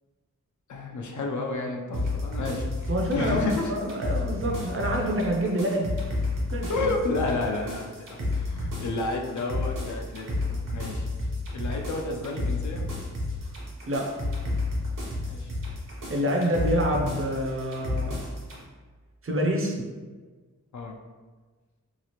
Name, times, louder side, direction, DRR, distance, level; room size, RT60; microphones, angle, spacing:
voice 1, 0.7-3.7 6.7-8.1 8.3-11.1 11.5-12.8 15.2-15.5 20.7-21.0, left 3 dB, 65° left, 2 dB, 0.5 m, -31 dB
sound 1, 1.9-18.6, left 2 dB, 75° right, 0.8 m, -31 dB
voice 2, 2.9-5.9 6.5-6.9 13.9-14.2 16.1-18.2 19.2-19.8, equal, 45° right, 1 dB, 0.5 m, -27 dB
3.0 x 2.4 x 2.9 m, 1.4 s
wide cardioid pair, 125°, 31 cm